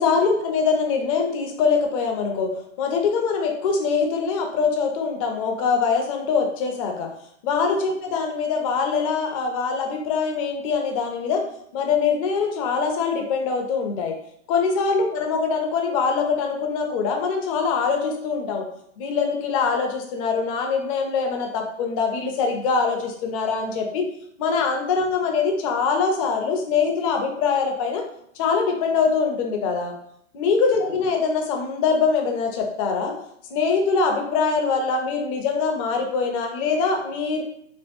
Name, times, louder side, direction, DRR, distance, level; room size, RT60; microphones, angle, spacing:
voice 1, 0.0-2.5 2.8-7.1 7.4-11.4 11.7-14.1 14.5-18.6 19.0-24.0 24.4-28.0 28.4-29.9 30.3-33.1 33.5-37.4, left 5 dB, 30° left, 3 dB, 0.5 m, -23 dB
3.0 x 2.4 x 3.3 m, 0.69 s
figure-of-eight pair, 115°, 38 cm